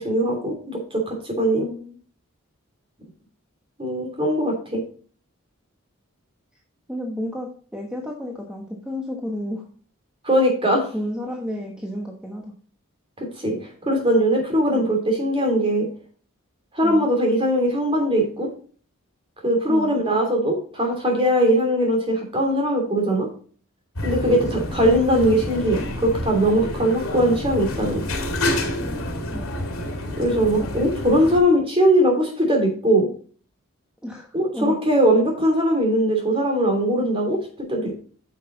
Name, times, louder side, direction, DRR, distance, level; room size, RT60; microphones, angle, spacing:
voice 1, 0.0-1.7 3.8-4.8 10.2-10.9 13.2-15.9 16.7-18.5 19.4-23.3 24.0-28.0 30.2-33.1 34.3-37.9, equal, 25° right, 1 dB, 2.9 m, -20 dB
voice 2, 1.6-2.0 6.9-9.6 10.9-12.4 14.7-14.9 16.8-17.2 19.7-20.0 29.3-29.6 30.6-30.8 34.0-34.3 34.5-34.8, left 1 dB, 5° right, -1 dB, 1.2 m, -31 dB
sound 1, 24.0-31.4, left 1 dB, 85° left, 2.4 m, -28 dB
9.2 x 6.5 x 4.0 m, 0.42 s
head